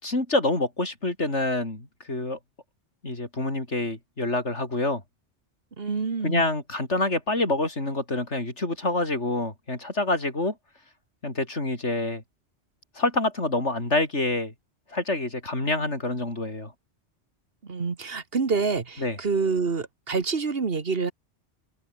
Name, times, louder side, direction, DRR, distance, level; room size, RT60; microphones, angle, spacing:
voice 1, 0.0-2.4 3.0-5.0 6.2-10.6 11.2-12.2 13.0-14.5 14.9-16.7 19.0-19.2, left 2 dB, 85° left, 5.3 m, -27 dB
voice 2, 5.8-6.5 17.6-21.1, right 4 dB, 55° right, 1.8 m, -27 dB
omnidirectional pair, 1.2 m